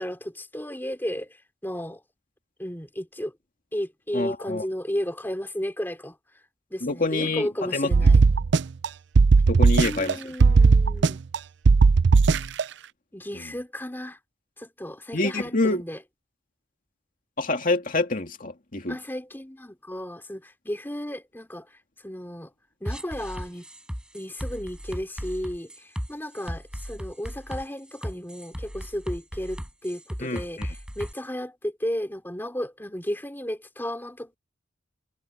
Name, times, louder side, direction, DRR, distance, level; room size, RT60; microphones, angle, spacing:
voice 1, 0.0-2.0 2.6-3.3 3.7-6.2 6.7-8.2 9.7-11.2 13.1-14.2 14.6-16.0 18.9-21.7 22.0-22.5 22.8-23.6 24.1-34.4, equal, 10° left, 3.0 m, -34 dB
voice 2, 4.1-4.6 6.8-7.9 9.5-10.3 15.1-15.8 17.4-19.0 30.2-30.7, left 2 dB, 45° left, 2.5 m, -26 dB
sound 1, 7.9-8.9 9.2-10.1 10.4-11.4 11.7-12.6, right 4 dB, 65° right, 0.5 m, -17 dB
sound 2, 22.9-31.1, equal, 5° right, 7.2 m, -36 dB
head